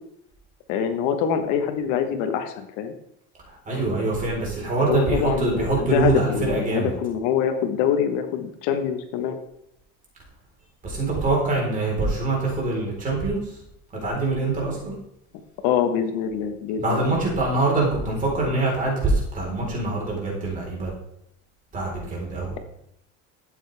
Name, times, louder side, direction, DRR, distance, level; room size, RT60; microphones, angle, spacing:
voice 1, 0.7-2.9 4.9-9.4 15.6-17.0, left 8 dB, 65° left, 7 dB, 1.3 m, -25 dB
voice 2, 3.4-6.9 10.8-13.6 14.0-14.9 16.8-20.9 21.7-22.6, right 2 dB, 25° right, -3 dB, 4.3 m, -24 dB
13.0 x 8.7 x 3.5 m, 0.77 s
cardioid pair, 150°, 33 cm